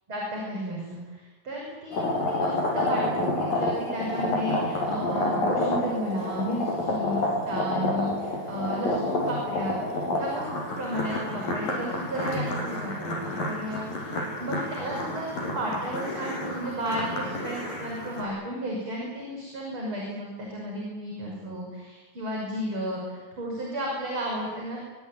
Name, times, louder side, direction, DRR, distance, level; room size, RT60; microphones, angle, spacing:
voice 1, 0.1-13.2 13.4-13.8 14.4-24.9, equal, 35° right, -2 dB, 6.8 m, -33 dB
sound 1, 1.9-18.2, left 1 dB, 80° left, 8.5 m, -29 dB
24.5 x 24.5 x 9.1 m, 1.3 s
omnidirectional pair, 4.0 m